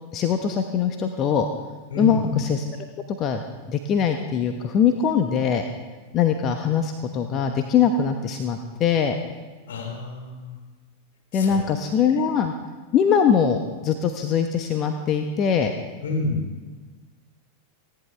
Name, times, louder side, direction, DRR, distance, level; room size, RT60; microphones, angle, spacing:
voice 1, 0.1-1.5 2.0-2.6 3.2-3.4 3.7-5.6 6.1-9.1 11.3-12.5 12.9-15.7, left 7 dB, 30° left, 6 dB, 1.1 m, -22 dB
voice 2, 1.9-2.3 9.7-10.5 11.3-11.6 12.1-12.2 16.0-16.5, left 3 dB, 60° left, 1 dB, 4.3 m, -29 dB
29.5 x 11.0 x 3.4 m, 1.3 s
figure-of-eight pair, 90°, 0 cm